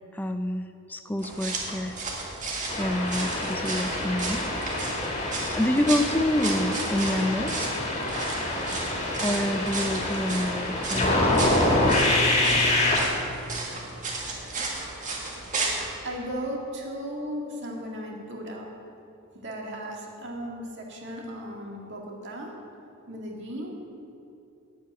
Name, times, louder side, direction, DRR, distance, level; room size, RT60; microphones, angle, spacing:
voice 1, 0.1-1.9 2.8-4.5 5.6-7.7 9.2-11.6 12.1-12.2, left 1 dB, 10° left, 7 dB, 0.4 m, -28 dB
sound 1, 1.2-15.9, right 3 dB, 35° right, 1.9 m, -34 dB
sound 2, 2.7-13.0, left 1 dB, 30° left, 1.9 m, -26 dB
voice 2, 16.0-18.7 19.3-22.5 23.1-23.7, equal, 55° right, -1 dB, 2.1 m, -36 dB
8.5 x 8.4 x 9.1 m, 2.7 s
head